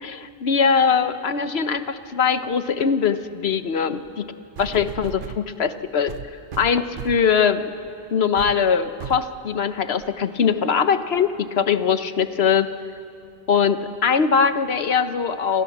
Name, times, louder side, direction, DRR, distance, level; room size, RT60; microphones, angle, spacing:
voice 1, 0.0-4.3 4.6-6.1 6.6-7.6 8.1-12.7 13.5-15.6, left 6 dB, 90° left, 10 dB, 1.2 m, -21 dB
sound 1, 4.0-4.1 4.6-5.4 6.1-7.3 7.8-8.0 8.4-8.6 9.0-9.3 10.0-10.1, right 8 dB, 60° right, 0.9 m, -36 dB
28.0 x 26.0 x 7.3 m, 2.6 s
omnidirectional pair, 1.0 m